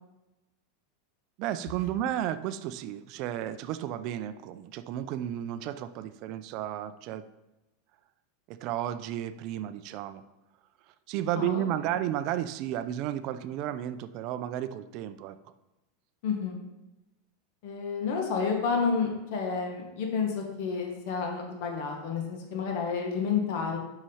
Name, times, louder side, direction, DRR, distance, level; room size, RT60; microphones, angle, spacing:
voice 1, 1.4-7.2 8.5-10.2 10.9-15.4, right 11 dB, 45° right, 12 dB, 0.4 m, -33 dB
voice 2, 16.2-16.6 17.6-23.8, left 5 dB, 55° left, 1 dB, 1.5 m, -30 dB
5.9 x 5.7 x 5.5 m, 1.0 s
supercardioid pair, 155°, 0 cm